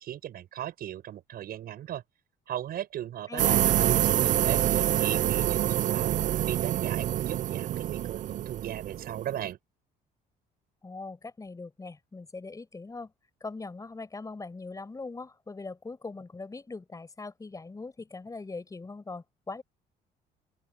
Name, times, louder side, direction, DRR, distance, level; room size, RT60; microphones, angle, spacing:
voice 1, 0.0-2.0 2.5-6.1 6.5-9.6, right 11 dB, 65° right, 7.8 m, -37 dB
voice 2, 3.3-3.6 10.8-13.1 13.4-19.6, left 3 dB, 20° left, 5.5 m, -41 dB
sound 1, 3.4-9.5, right 12 dB, 50° right, 0.4 m, -26 dB
open air
cardioid pair, 110°, 17 cm